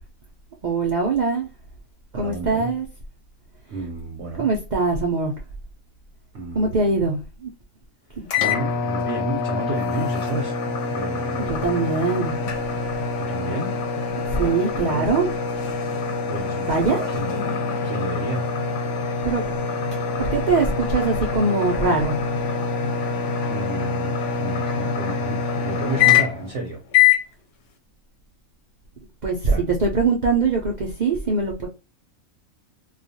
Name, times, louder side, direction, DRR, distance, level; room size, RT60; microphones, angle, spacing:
voice 1, 0.6-1.5 2.1-2.8 4.4-5.3 6.5-7.5 8.2-8.3 11.5-12.4 14.4-15.3 16.7-17.0 19.2-19.4 20.2-22.2 29.2-29.3 29.8-31.7, right 4 dB, 85° right, 0.4 m, -22 dB
voice 2, 2.1-2.7 3.7-4.5 6.3-7.0 8.4-10.6 10.9-11.5 13.2-13.8 14.7-15.1 16.3-17.4 17.8-18.5 23.5-26.8 29.4-29.6, right 2 dB, 60° right, 0.8 m, -31 dB
sound 1, 8.3-26.5 26.9-27.3, left 6 dB, 65° left, 0.8 m, -24 dB
2.4 x 2.2 x 2.6 m
omnidirectional pair, 1.5 m